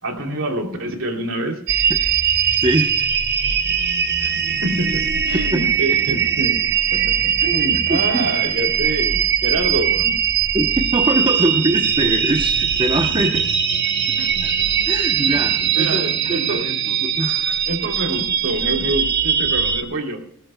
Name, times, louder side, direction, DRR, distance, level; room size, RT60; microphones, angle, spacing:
voice 1, 0.0-1.6 4.2-4.3 4.6-6.6 6.9-10.2 13.2-13.3 14.2-14.7 15.2-16.6 17.7-20.2, right 1 dB, 65° right, 2 dB, 3.0 m, -26 dB
sound 1, 1.7-19.8, right 8 dB, 50° right, 1.1 m, -20 dB
voice 2, 2.6-3.1 5.5-5.6 7.9-8.3 10.5-13.5 14.4-14.5 14.9-17.6, right 1 dB, 25° right, 5 dB, 0.8 m, -23 dB
20.0 x 18.0 x 2.2 m, 0.67 s
head